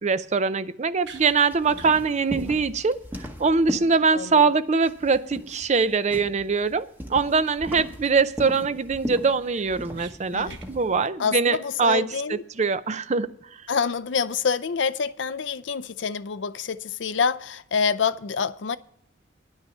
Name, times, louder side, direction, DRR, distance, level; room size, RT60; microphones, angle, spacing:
voice 1, 0.0-3.0 3.4-13.3, right 4 dB, 40° right, 0.5 m, -23 dB
sound 1, 1.0-1.3 1.7-2.0 2.3-2.4 2.7-2.9 3.1-3.2 7.4-7.5 8.0-8.4 8.8-8.9 9.2-10.1 10.5-10.7, right 6 dB, 65° right, 1.2 m, -45 dB
sound 2, 1.1-4.4 4.7-11.1, equal, 10° right, 1.1 m, -38 dB
voice 2, 4.1-4.4 10.3-10.6 11.2-12.4 13.7-18.8, left 6 dB, 70° left, 0.5 m, -26 dB
10.5 x 6.3 x 8.3 m
head